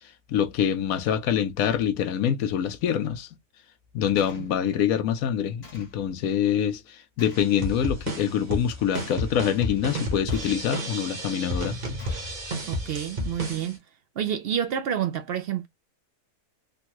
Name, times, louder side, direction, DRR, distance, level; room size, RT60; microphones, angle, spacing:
voice 1, 0.3-3.3 3.9-11.8, left 9 dB, 80° left, 1.1 m, -25 dB
Gunshot gunfire, 4.2-4.5 5.6-6.0 7.2-7.6 8.9-9.3 10.3-10.8 12.0-12.4, left 4 dB, 45° left, 1.5 m, -49 dB
sound 1, 7.3-13.7, equal, 35° right, 0.9 m, -32 dB
voice 2, 12.7-13.8 14.2-15.7, right 9 dB, 70° right, 0.5 m, -29 dB
3.5 x 2.3 x 2.8 m
omnidirectional pair, 1.5 m